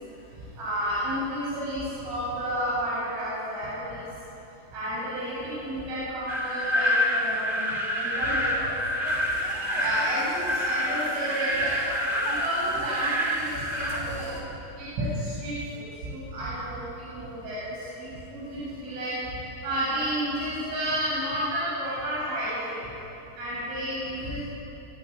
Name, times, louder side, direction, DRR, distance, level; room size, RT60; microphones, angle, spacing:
voice 1, 0.6-4.0 4.7-9.0 9.8-11.8 12.3-14.4 14.8-19.1 19.6-22.8 23.4-24.4, equal, 85° right, -9 dB, 10.5 m, -31 dB
sound 1, 6.3-14.0, equal, 20° right, 1.4 m, -27 dB
sound 2, 9.0-14.4, right 3 dB, 55° right, 4.6 m, -42 dB
24.5 x 18.5 x 9.2 m, 2.9 s
omnidirectional pair, 5.8 m